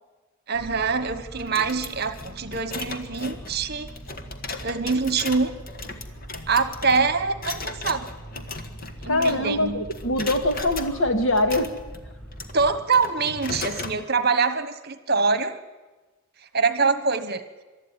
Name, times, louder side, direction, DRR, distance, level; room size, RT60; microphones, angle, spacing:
sound 1, 0.5-12.8, right 1 dB, 5° left, 5.5 m, -42 dB
voice 1, 0.5-3.9 4.6-5.5 6.5-8.1 9.0-9.8 12.5-15.6 16.5-17.4, right 4 dB, 50° right, 12 dB, 1.3 m, -24 dB
sound 2, 1.4-9.6 9.9-10.9 11.4-14.0, left 3 dB, 45° left, 1.5 m, -37 dB
voice 2, 9.1-11.7, left 1 dB, 65° left, 6 dB, 2.2 m, -23 dB
23.5 x 13.0 x 10.0 m, 1.2 s
head